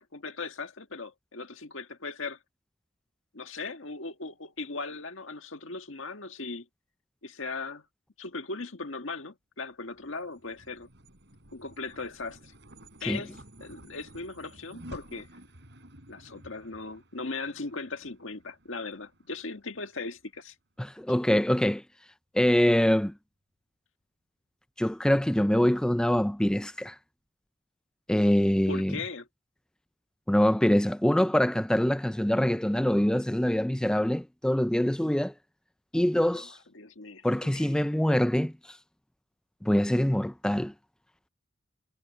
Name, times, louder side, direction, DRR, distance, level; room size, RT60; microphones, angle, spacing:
voice 1, 0.0-2.4 3.3-6.7 7.2-7.8 8.2-10.9 11.5-12.5 13.0-15.3 16.1-20.5 28.7-29.3 36.3-36.5 36.7-37.2 37.5-37.7 38.1-38.2, left 3 dB, 80° left, 1.7 m, -38 dB
sound 1, 9.9-20.4, right 1 dB, 60° right, 6.3 m, -52 dB
voice 2, 20.8-21.8 22.3-23.1 24.8-27.0 28.1-29.0 30.3-35.3 35.9-36.6 37.2-38.8 39.6-40.7, equal, 5° left, 0.3 m, -24 dB
head